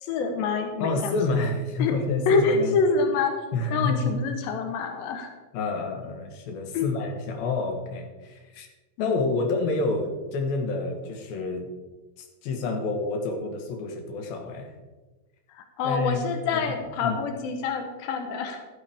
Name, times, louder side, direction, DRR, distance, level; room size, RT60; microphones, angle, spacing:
voice 1, 0.0-1.1 1.8-1.9 2.3-3.3 3.7-5.3 6.7-6.9 9.0-9.2 15.5-18.6, left 4 dB, 85° left, 5 dB, 2.1 m, -26 dB
voice 2, 0.8-2.8 3.5-4.2 5.5-8.7 9.0-11.7 12.2-14.7 15.8-16.2 16.5-16.6 17.0-17.2, left 3 dB, 70° left, 3 dB, 2.4 m, -28 dB
12.5 x 10.5 x 3.5 m, 1.2 s
omnidirectional pair, 5.6 m